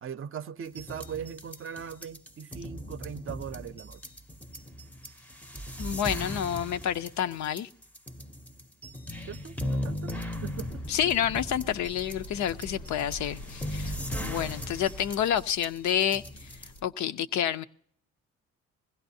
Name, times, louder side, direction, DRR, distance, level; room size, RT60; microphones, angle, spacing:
voice 1, 0.0-4.0 9.3-10.8, right 8 dB, 45° right, 0.6 m, -40 dB
sound 1, 0.7-16.8, equal, 5° left, 0.6 m, -38 dB
voice 2, 5.8-7.7 10.9-16.5 16.8-17.6, left 10 dB, 65° left, 0.6 m, -29 dB
sound 2, 10.0-16.9, left 1 dB, 80° left, 1.1 m, -45 dB
21.0 x 16.0 x 2.7 m
cardioid pair, 90°, 30 cm